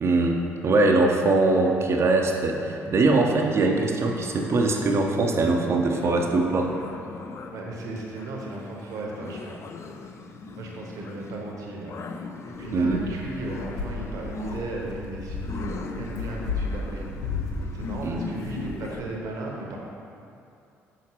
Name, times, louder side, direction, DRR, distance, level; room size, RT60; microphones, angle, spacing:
voice 1, 0.0-6.7 12.7-13.0 18.0-18.2, right 2 dB, 40° right, 1 dB, 0.7 m, -22 dB
sound 1, 4.0-19.2, left 3 dB, 40° left, 0.4 m, -40 dB
voice 2, 7.5-9.6 10.5-11.9 12.5-17.2 17.7-19.8, right 2 dB, 55° right, -1 dB, 1.0 m, -36 dB
sound 2, 12.5-18.9, left 3 dB, 65° left, 0.9 m, -34 dB
6.1 x 5.6 x 3.0 m, 2.6 s
figure-of-eight pair, 50°, 7 cm